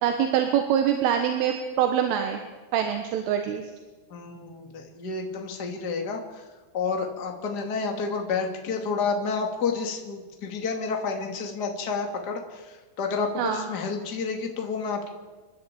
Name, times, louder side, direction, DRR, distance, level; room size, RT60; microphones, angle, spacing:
voice 1, 0.0-2.4 2.7-3.6 13.4-13.6, right 9 dB, 80° right, 5 dB, 3.8 m, -24 dB
voice 2, 4.1-6.4 6.7-15.1, left 4 dB, 35° left, 3 dB, 1.7 m, -30 dB
29.0 x 11.0 x 8.5 m, 1.3 s
omnidirectional pair, 5.8 m